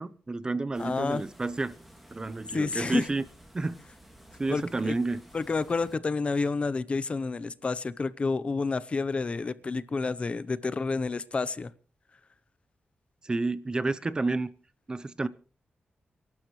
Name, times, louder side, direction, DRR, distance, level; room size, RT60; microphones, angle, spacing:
voice 1, 0.0-1.7 2.1-3.2 3.5-3.8 4.4-5.2 13.2-14.5 14.9-15.3, right 3 dB, 25° right, 15 dB, 0.7 m, -30 dB
sound 1, 0.7-6.0, right 1 dB, ahead, 2.6 m, -53 dB
voice 2, 0.8-1.2 2.5-3.1 4.5-4.9 5.3-11.7, left 4 dB, 35° left, 17 dB, 0.8 m, -29 dB
29.5 x 12.0 x 3.2 m, 0.37 s
wide cardioid pair, 140°, 3 cm